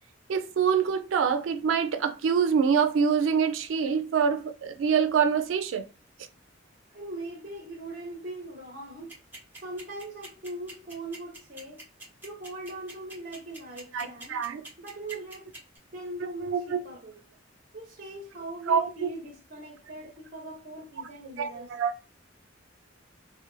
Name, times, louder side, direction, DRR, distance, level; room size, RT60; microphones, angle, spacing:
voice 1, 0.3-5.8 13.9-14.6 16.4-16.8 18.7-19.1 21.4-21.9, right 6 dB, 80° right, 0.3 m, -25 dB
voice 2, 6.9-9.1 9.6-11.8 12.2-14.4 14.8-15.5 15.9-17.2 17.7-21.8, right 1 dB, 45° right, 0.6 m, -40 dB
sound 1, 9.1-15.8, right 2 dB, 10° right, 0.9 m, -44 dB
2.4 x 2.1 x 3.0 m
head